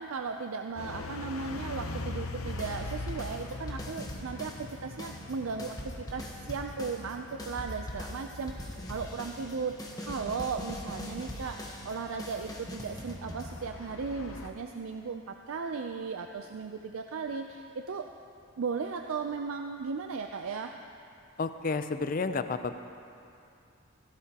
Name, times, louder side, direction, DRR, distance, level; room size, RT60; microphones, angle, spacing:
voice 1, 0.0-18.1 18.6-20.8, right 5 dB, 75° right, 5 dB, 0.5 m, -36 dB
sound 1, 0.8-14.5, left 2 dB, 85° left, 0.9 m, -43 dB
sound 2, 2.5-4.7 5.0-14.0, equal, 15° left, 1.1 m, -42 dB
voice 2, 21.4-22.7, left 4 dB, 40° left, 10 dB, 0.5 m, -31 dB
16.0 x 15.5 x 2.9 m, 2.5 s
head